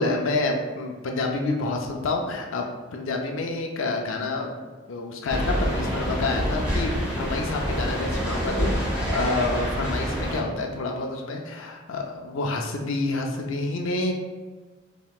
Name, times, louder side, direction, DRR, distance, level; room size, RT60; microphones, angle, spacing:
voice 1, 0.0-2.7 2.9-4.6 4.9-14.1, left 3 dB, 85° left, 2 dB, 0.5 m, -28 dB
sound 1, 5.3-10.4, equal, 10° right, 1.4 m, -27 dB
5.4 x 2.8 x 2.3 m, 1.3 s
head